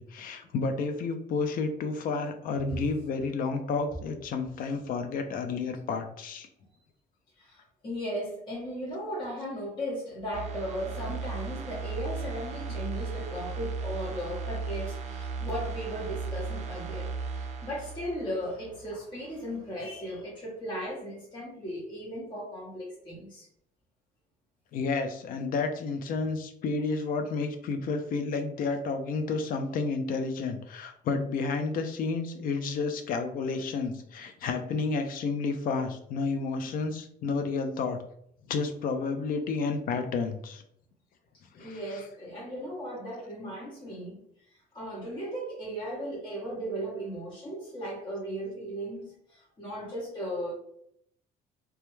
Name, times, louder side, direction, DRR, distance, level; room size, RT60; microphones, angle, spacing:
voice 1, 0.0-6.5 24.7-38.0 38.5-40.6 41.5-42.0, left 4 dB, 55° left, 7 dB, 0.5 m, -31 dB
voice 2, 7.4-17.1 17.3-23.5 41.6-44.2 44.7-50.5, equal, 25° left, -6 dB, 0.8 m, -36 dB
sound 1, 10.3-19.0 19.4-19.5, right 4 dB, 40° right, 0.4 m, -36 dB
2.3 x 2.1 x 3.0 m, 0.70 s
cardioid pair, 110°, 17 cm